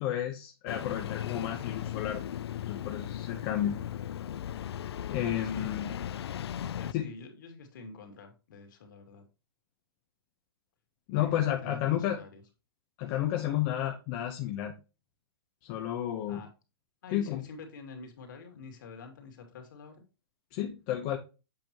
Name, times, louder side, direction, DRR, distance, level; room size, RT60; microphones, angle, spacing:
voice 1, 0.0-2.2 2.6-3.8 5.1-5.9 6.9-7.1 11.1-12.2 13.0-14.7 15.6-16.4 17.1-17.4 20.5-21.2, left 11 dB, 25° left, 2 dB, 0.8 m, -31 dB
Engine starting, 0.7-6.9, left 10 dB, 80° left, 0.4 m, -37 dB
voice 2, 5.4-6.3 6.6-9.3 11.1-12.4 16.3-16.5 17.0-20.0, left 4 dB, 50° left, 4 dB, 2.4 m, -47 dB
7.7 x 5.4 x 3.0 m, 0.29 s
hypercardioid pair, 170°, 13 cm